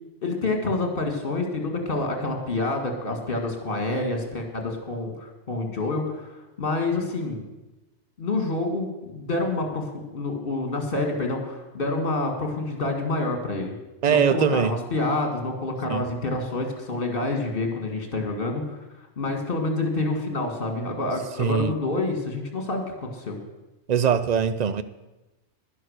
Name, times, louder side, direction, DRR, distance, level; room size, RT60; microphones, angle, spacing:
voice 1, 0.2-7.4 8.2-13.7 14.1-18.8 19.2-23.4, left 2 dB, 40° left, 2.3 m, -28 dB
voice 2, 14.0-14.7 15.9-16.0 21.4-21.7 23.9-24.8, right 7 dB, 75° right, 0.3 m, -22 dB
11.0 x 11.0 x 6.5 m
omnidirectional pair, 1.4 m